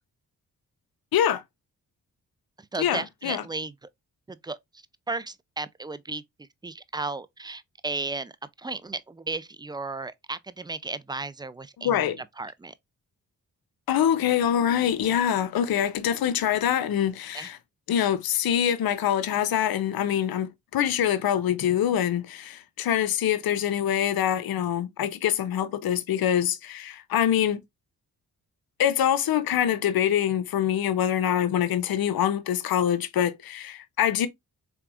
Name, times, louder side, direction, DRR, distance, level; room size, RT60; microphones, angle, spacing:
voice 1, 1.1-1.4 2.8-3.4 11.8-12.2 13.9-17.6 17.9-27.6 28.8-34.3, left 10 dB, 65° left, 0.7 m, -25 dB
voice 2, 2.7-3.7 4.3-4.6 5.1-6.2 6.6-8.3 8.6-12.1 12.4-12.7 17.3-17.5, right 3 dB, 10° right, 0.4 m, -34 dB
4.6 x 3.4 x 2.4 m
cardioid pair, 50°, 39 cm